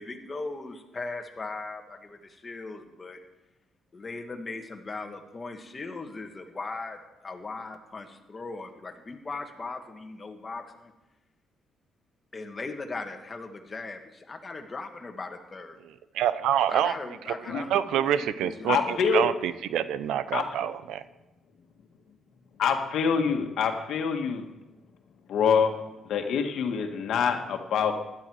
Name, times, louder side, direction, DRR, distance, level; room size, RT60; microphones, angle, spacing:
voice 1, 0.0-2.2 2.4-3.2 3.9-7.0 7.2-10.9 12.3-15.8 16.7-19.0, left 3 dB, 30° left, 3 dB, 2.1 m, -38 dB
voice 2, 15.8-21.0, right 10 dB, 85° right, 14 dB, 0.7 m, -27 dB
voice 3, 18.7-19.3 20.3-20.4 22.6-24.5 25.3-25.8 26.0-27.9, left 6 dB, 75° left, 4 dB, 1.8 m, -25 dB
16.5 x 11.5 x 4.8 m, 0.97 s
cardioid pair, 90°, 0 cm